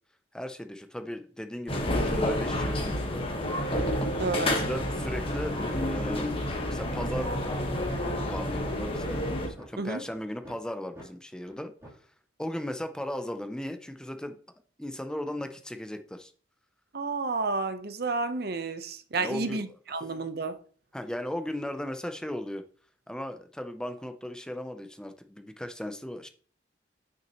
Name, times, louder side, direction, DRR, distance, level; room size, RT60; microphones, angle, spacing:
voice 1, 0.3-3.2 4.4-6.3 6.7-7.3 7.8-9.2 9.5-11.7 12.4-14.4 14.8-16.3 19.1-19.6 20.9-22.6 23.1-26.3, left 1 dB, 5° left, 0.5 m, -37 dB
sound 1, 1.7-9.5, left 1 dB, 30° left, 1.3 m, -29 dB
voice 2, 4.2-4.5 9.8-10.0 16.9-20.6, right 3 dB, 55° right, 0.8 m, -31 dB
sound 2, 7.7-7.8 8.2-8.3 8.8-9.7 10.1-10.2 10.4-10.6 11.0-11.1 11.5-11.6 11.8-12.0, right 1 dB, 15° right, 3.2 m, -46 dB
8.8 x 6.0 x 3.0 m
head